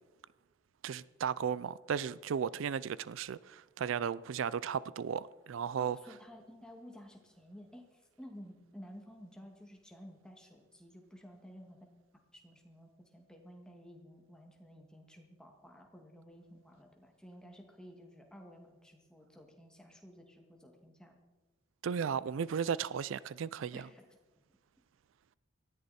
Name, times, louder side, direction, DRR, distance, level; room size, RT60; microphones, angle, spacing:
voice 1, 0.8-6.0 21.8-23.8, right 7 dB, 80° right, 0.4 m, -35 dB
voice 2, 5.8-11.8 12.3-21.2 23.7-24.1, equal, 5° left, 2.0 m, -53 dB
18.5 x 14.0 x 4.2 m
head